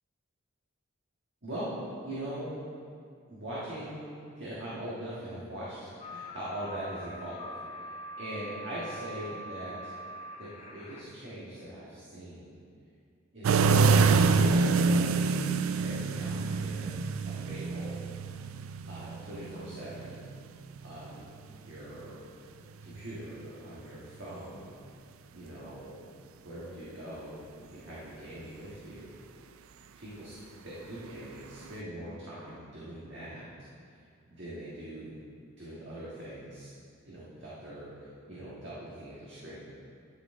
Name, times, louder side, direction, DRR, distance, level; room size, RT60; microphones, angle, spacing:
voice 1, 1.4-1.7 2.0-2.6 3.3-7.5 7.7-9.9 10.4-12.5 13.3-13.8 14.2-18.4 18.9-20.2 20.8-22.3 22.8-24.7 25.3-26.0 26.4-29.1 29.9-30.3 30.6-33.5 34.3-35.2 35.6-36.7 37.1-39.6, right 1 dB, 55° right, -9 dB, 1.6 m, -42 dB
sound 1, 6.0-11.0, equal, 30° left, 0.6 m, -43 dB
sound 2, 13.4-21.2 22.8-23.2 31.7-31.8, right 4 dB, 75° right, 0.4 m, -26 dB
11.5 x 6.6 x 3.7 m, 2.3 s
head